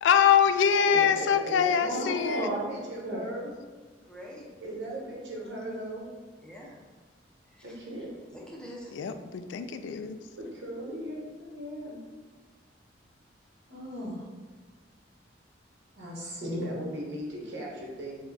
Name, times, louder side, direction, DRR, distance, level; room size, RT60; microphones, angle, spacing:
voice 1, 0.0-2.5 8.9-10.2, left 7 dB, 90° left, 9 dB, 0.3 m, -24 dB
voice 2, 0.9-3.5 4.6-6.1 7.6-8.1 10.4-12.0 16.5-18.2, right 1 dB, 80° right, -3 dB, 1.0 m, -38 dB
voice 3, 1.9-2.6 3.0-3.2 13.7-14.1 16.0-16.6, equal, 60° right, -6 dB, 1.2 m, -34 dB
voice 4, 4.0-4.8 6.4-6.8 7.5-7.8 8.3-9.0, equal, 5° left, -3 dB, 0.6 m, -45 dB
4.6 x 2.2 x 4.0 m, 1.4 s
head